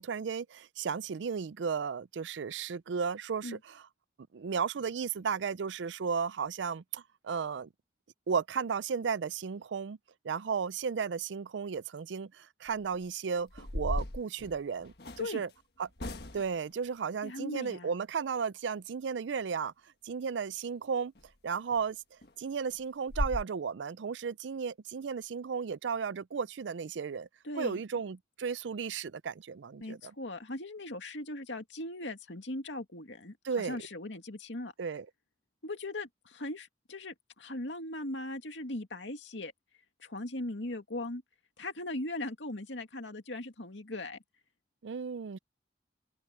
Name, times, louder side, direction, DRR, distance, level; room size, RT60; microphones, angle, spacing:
voice 1, 0.0-3.8 4.3-7.7 8.3-10.0 10.2-14.9 15.2-15.5 15.8-15.9 16.3-19.7 20.0-21.1 21.4-22.0 22.4-27.3 27.6-30.1 33.4-33.8 34.8-35.1 44.8-45.4, right 6 dB, 85° right, 0.4 m, -34 dB
sound 1, 12.7-13.0 13.5-15.3 16.0-16.6 21.2-21.3 21.7-21.8 22.2-22.3 22.7-22.8 23.1-23.4, left 1 dB, 60° left, 1.6 m, -36 dB
voice 2, 17.2-17.9 27.4-27.8 29.8-34.7 35.6-39.5 40.0-41.2 41.6-44.2, left 1 dB, 85° left, 2.4 m, -39 dB
head